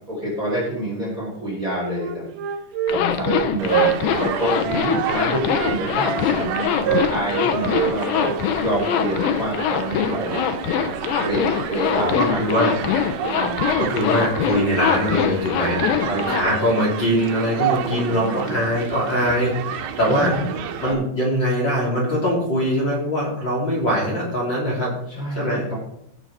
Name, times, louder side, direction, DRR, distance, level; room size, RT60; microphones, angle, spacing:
voice 1, 0.1-2.2 2.9-8.3 8.6-10.5 11.2-12.6 13.3-13.7 16.1-16.4 17.9-18.6 20.1-20.9 25.1-25.8, equal, 20° right, -4 dB, 3.6 m, -27 dB
Wind instrument woodwind instrument, 1.9-5.3 5.6-8.9, right 10 dB, 70° right, 2.4 m, -26 dB
Zipper (clothing), 2.9-16.4, left 9 dB, 75° left, 2.6 m, -23 dB
Human group actions, 3.6-20.9, right 9 dB, 85° right, 2.9 m, -30 dB
voice 2, 11.9-12.7 13.8-15.8 16.1-20.4 20.8-24.9 25.4-25.7, equal, 30° left, -5 dB, 3.6 m, -22 dB
17.0 x 6.8 x 4.3 m, 0.73 s
omnidirectional pair, 4.4 m